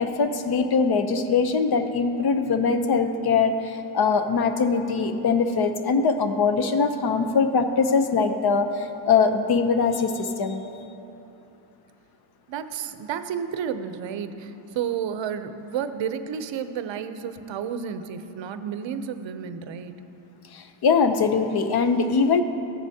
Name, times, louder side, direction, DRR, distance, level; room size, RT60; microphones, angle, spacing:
voice 1, 0.0-10.6 20.5-22.4, left 5 dB, 50° left, 8 dB, 0.6 m, -22 dB
voice 2, 12.5-19.9, right 8 dB, 65° right, 10 dB, 0.6 m, -31 dB
14.5 x 9.8 x 2.7 m, 2.9 s
wide cardioid pair, 145°, 48 cm